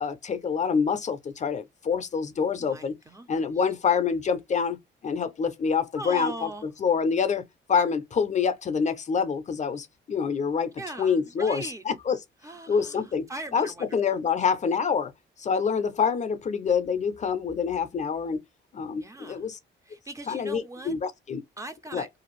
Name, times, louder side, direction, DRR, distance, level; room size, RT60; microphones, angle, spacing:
voice 1, 0.0-2.9 3.3-4.8 5.0-6.5 6.8-7.4 7.7-10.7 11.0-12.2 12.7-13.3 13.5-15.1 15.4-18.4 18.7-19.6 20.3-21.4 21.9-22.1, left 6 dB, 35° left, 0.5 m, -26 dB
voice 2, 2.6-3.7 5.9-6.7 10.8-11.8 12.4-13.9 19.0-19.4 19.8-20.9 21.6-22.1, right 1 dB, 15° right, 0.5 m, -40 dB
2.5 x 2.3 x 3.0 m
cardioid pair, 90°, 20 cm